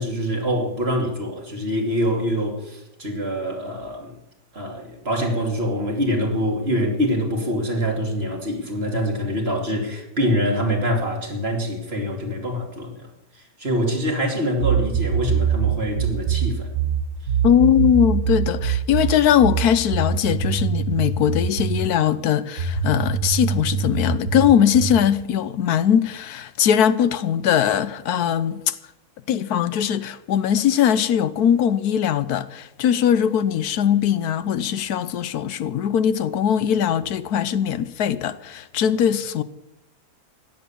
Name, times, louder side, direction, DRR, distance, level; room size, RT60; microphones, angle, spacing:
voice 1, 0.0-4.2 4.5-16.7, equal, 40° right, 2.9 m, -25 dB
sound 1, 14.6-21.9 22.6-25.1, right 7 dB, 65° right, 1.7 m, -23 dB
voice 2, 17.4-28.8 29.3-39.4, left 9 dB, 80° left, 1.3 m, -20 dB
16.0 x 11.0 x 7.2 m
omnidirectional pair, 1.6 m